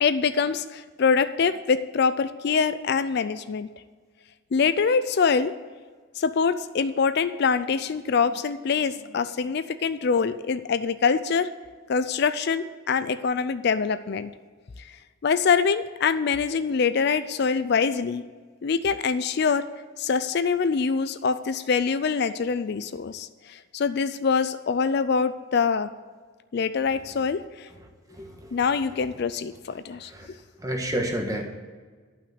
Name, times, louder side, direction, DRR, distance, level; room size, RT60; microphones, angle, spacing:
voice 1, 0.0-3.7 4.5-5.5 6.2-11.5 11.9-14.3 14.8-15.0 15.2-18.2 18.6-19.7 20.0-25.9 26.5-27.7 28.5-30.1, left 5 dB, 55° left, 13 dB, 0.4 m, -24 dB
voice 2, 28.2-28.5 30.1-30.3 30.6-31.4, right 1 dB, 15° right, 3 dB, 1.3 m, -29 dB
11.5 x 5.9 x 7.9 m, 1.5 s
head